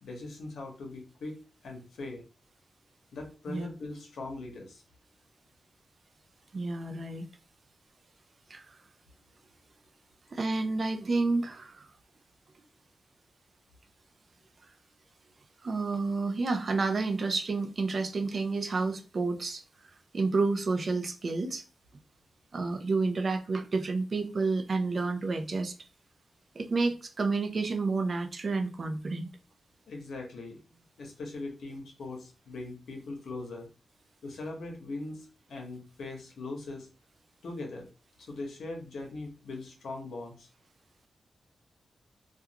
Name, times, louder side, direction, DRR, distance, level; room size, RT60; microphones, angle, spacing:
voice 1, 0.0-2.2 3.1-4.8 29.9-33.7 34.2-36.9 37.4-37.9 38.2-40.5, left 2 dB, 90° left, 0.8 m, -41 dB
voice 2, 6.5-7.3 8.5-8.8 10.3-11.9 15.6-19.6 20.1-21.6 22.5-25.7 26.5-29.3, right 3 dB, 55° right, 0.4 m, -30 dB
2.4 x 2.3 x 2.8 m
cardioid pair, 65°, 0 cm